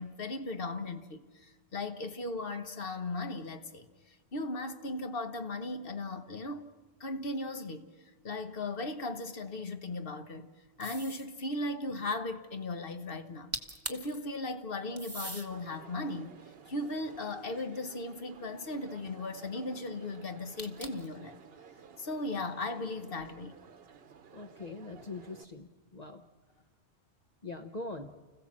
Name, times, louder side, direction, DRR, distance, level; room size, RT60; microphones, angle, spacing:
voice 1, 0.0-6.7 7.0-7.9 8.2-10.5 10.8-16.4 16.7-21.4 22.0-23.6, left 2 dB, 55° left, 1.4 m, -37 dB
sound 1, 10.8-11.3 13.3-13.4 13.5-14.2 15.0-15.5 16.2-17.6 20.6-21.1, right 1 dB, 15° right, 1.3 m, -41 dB
Crowd, 15.5-25.4, right 6 dB, 60° right, 1.0 m, -54 dB
voice 2, 24.3-26.2 27.4-28.1, left 2 dB, 40° left, 1.0 m, -42 dB
30.0 x 16.0 x 7.4 m
omnidirectional pair, 1.1 m